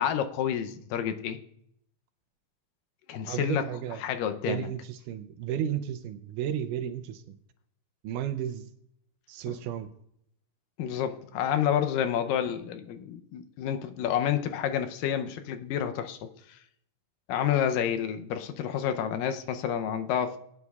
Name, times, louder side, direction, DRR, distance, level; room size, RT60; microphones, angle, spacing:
voice 1, 0.0-1.4 3.1-3.7 4.0-4.7 9.5-9.6 10.8-16.6 17.3-20.4, left 9 dB, 85° left, 8 dB, 2.4 m, -29 dB
voice 2, 3.3-4.0 4.5-7.2 8.0-8.6 9.3-9.9, right 9 dB, 80° right, 10 dB, 2.2 m, -33 dB
20.5 x 9.4 x 2.3 m, 0.74 s
omnidirectional pair, 3.9 m